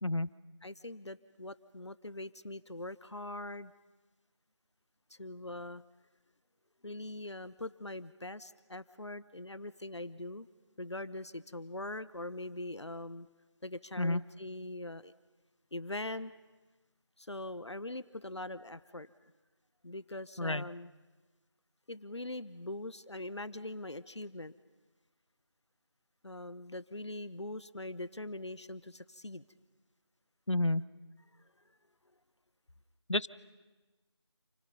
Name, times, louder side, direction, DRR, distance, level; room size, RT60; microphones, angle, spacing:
voice 1, 0.6-3.7 5.1-5.8 6.8-10.5 10.8-13.3 13.6-15.1 15.7-16.3 17.2-19.1 19.8-20.9 21.9-24.5 26.2-29.4, left 1 dB, 70° left, 16 dB, 1.1 m, -42 dB
voice 2, 20.4-20.7 30.5-30.8 33.1-33.3, left 2 dB, 90° left, 18 dB, 0.9 m, -30 dB
30.0 x 29.0 x 5.5 m, 1.2 s
figure-of-eight pair, 170°, 15 cm